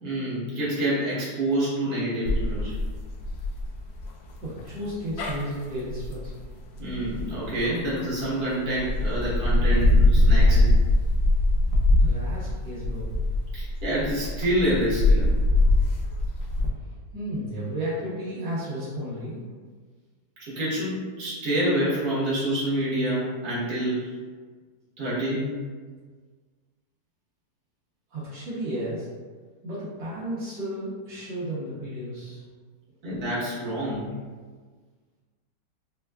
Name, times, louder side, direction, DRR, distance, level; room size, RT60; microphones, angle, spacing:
voice 1, 0.0-2.8 6.8-10.7 13.5-15.3 20.4-24.1 25.0-25.5 33.0-34.1, right 1 dB, 60° right, -9 dB, 1.6 m, -27 dB
sound 1, 2.3-8.2 8.7-16.7, left 1 dB, 80° left, 1.2 m, -22 dB
voice 2, 4.4-6.3 12.0-13.1 16.8-19.4 28.1-29.1 29.6-32.4 33.1-33.2, right 1 dB, 80° right, -10 dB, 1.5 m, -33 dB
4.4 x 2.3 x 2.2 m, 1.5 s
omnidirectional pair, 1.9 m